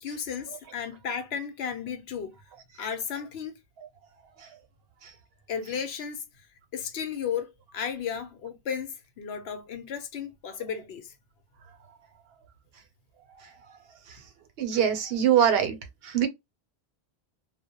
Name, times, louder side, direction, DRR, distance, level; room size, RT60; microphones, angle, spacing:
voice 1, 0.0-2.3 2.8-3.5 5.5-6.2 6.7-11.1, left 7 dB, 90° left, 0.9 m, -34 dB
voice 2, 14.6-15.8 16.0-16.3, right 9 dB, 75° right, 0.8 m, -23 dB
2.2 x 2.0 x 2.8 m
omnidirectional pair, 1.0 m